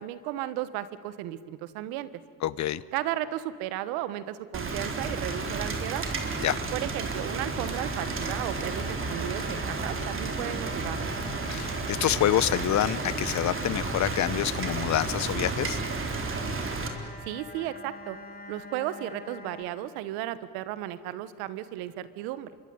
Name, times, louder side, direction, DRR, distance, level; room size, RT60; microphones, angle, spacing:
voice 1, 0.0-2.1 2.9-6.0 6.7-11.1 17.2-18.2 18.5-22.5, right 13 dB, 85° right, 15 dB, 1.4 m, -34 dB
voice 2, 2.4-2.8 6.4-6.6 11.5-15.8, left 12 dB, 50° left, 19 dB, 1.0 m, -27 dB
Rain, 4.5-16.9, right 3 dB, 35° right, 3.9 m, -32 dB
sound 1, 7.8-19.6, left 2 dB, 25° left, 4.0 m, -45 dB
26.5 x 23.0 x 9.6 m, 2.1 s
supercardioid pair, 90°, 35 cm